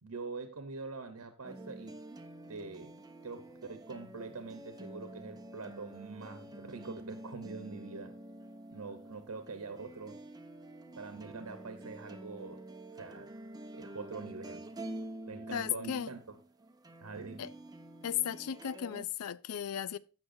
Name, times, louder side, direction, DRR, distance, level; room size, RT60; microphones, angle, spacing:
voice 1, 0.0-1.9 2.5-2.9 3.2-8.1 8.7-10.2 11.0-12.6 13.0-13.3 13.7-14.7 15.3-16.2 17.0-17.4, right 4 dB, 75° right, 1.0 m, -44 dB
sound 1, 1.4-19.0, right 1 dB, 20° right, 0.7 m, -48 dB
voice 2, 15.5-16.1 17.4-17.5 18.0-20.0, left 9 dB, 85° left, 0.5 m, -35 dB
15.0 x 6.1 x 2.6 m
head